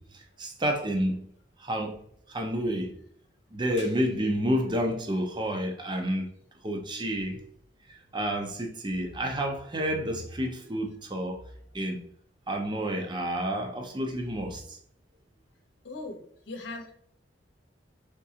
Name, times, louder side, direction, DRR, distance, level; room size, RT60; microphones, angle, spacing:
voice 1, 0.4-1.3 1.6-1.9 2.3-2.9 3.5-6.3 6.6-7.4 8.1-11.4 11.7-12.0 12.5-14.8, equal, 25° right, 0.6 m, -29 dB
voice 2, 15.8-16.9, left 2 dB, 75° left, 0.8 m, -39 dB
3.9 x 3.6 x 2.8 m
head